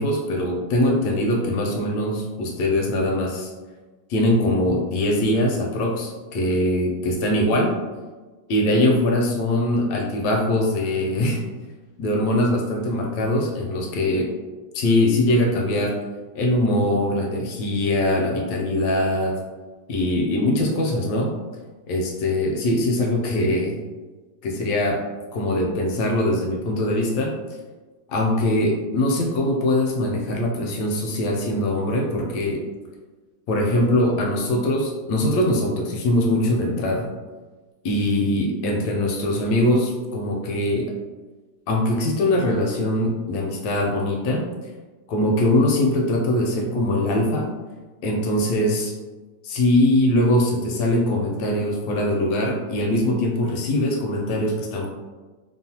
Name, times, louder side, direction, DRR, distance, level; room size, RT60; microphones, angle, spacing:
voice 1, 0.0-3.5 4.1-7.7 8.5-11.4 12.0-14.3 14.7-15.9 16.3-19.3 19.9-21.3 21.9-23.8 24.4-25.0 25.3-27.3 28.1-32.6 33.5-37.1 37.8-40.9 41.7-44.4 45.1-47.5 48.0-48.9 49.4-54.9, left 1 dB, 75° left, -1 dB, 1.0 m, -22 dB
3.0 x 2.1 x 2.7 m, 1.3 s
omnidirectional pair, 2.0 m